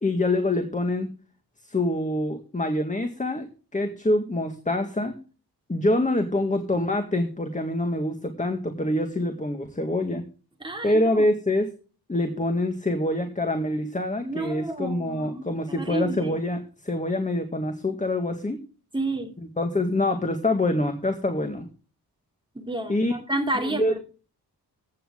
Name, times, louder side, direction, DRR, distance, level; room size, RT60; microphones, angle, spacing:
voice 1, 0.0-1.1 1.6-3.5 3.7-5.2 5.7-10.2 10.8-11.7 12.1-18.6 19.6-21.7 22.9-23.1 23.7-24.0, left 1 dB, 20° left, 1.9 m, -25 dB
voice 2, 10.6-11.2 14.2-16.4 18.9-19.3 22.5-24.0, right 2 dB, 10° right, 2.8 m, -30 dB
15.5 x 8.7 x 3.8 m
wide cardioid pair, 120°, 39 cm